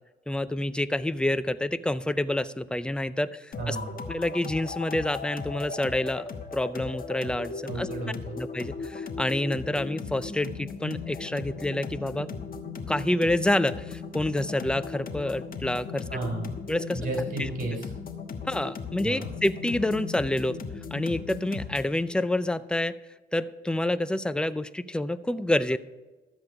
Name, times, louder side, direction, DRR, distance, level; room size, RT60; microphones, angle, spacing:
voice 1, 0.3-3.8 4.1-6.2 6.5-7.9 8.4-12.3 12.9-16.1 16.7-17.0 17.4-17.5 18.4-20.6 20.9-23.0 23.3-25.8, left 1 dB, 5° left, 14 dB, 0.5 m, -28 dB
sound 1, 3.5-22.0, left 5 dB, 45° left, 1.3 m, -37 dB
voice 2, 3.6-3.9 7.6-8.4 16.1-16.5 16.9-17.9 19.0-19.3, right 2 dB, 45° right, 1 dB, 4.6 m, -32 dB
12.5 x 8.2 x 4.9 m, 1.1 s
cardioid pair, 90°, 20 cm